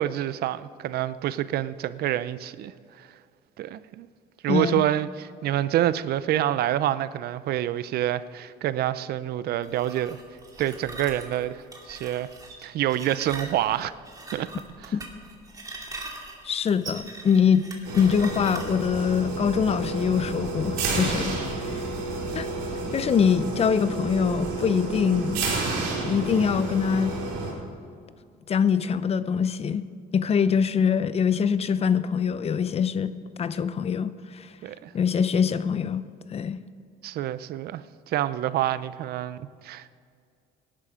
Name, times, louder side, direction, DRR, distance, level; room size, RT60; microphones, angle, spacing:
voice 1, 0.0-3.1 3.6-4.1 4.4-10.2 10.6-12.3 12.6-13.9 14.3-14.5 14.8-14.9 21.3-21.4 34.6-34.9 37.0-39.9, right 12 dB, 70° right, 15 dB, 0.6 m, -27 dB
voice 2, 4.5-4.8 14.9-15.0 16.4-17.6 17.9-21.3 21.6-21.8 22.3-22.5 22.9-25.5 26.0-27.1 28.5-29.8 30.1-33.1 33.4-34.5 34.9-36.0 36.3-36.6, left 7 dB, 35° left, 14 dB, 0.7 m, -24 dB
sound 1, 9.6-19.0, right 2 dB, 20° right, 2.7 m, -41 dB
sound 2, 17.8-27.5, right 3 dB, 90° right, 4.3 m, -30 dB
18.0 x 11.0 x 5.0 m, 2.3 s
cardioid pair, 110°, 17 cm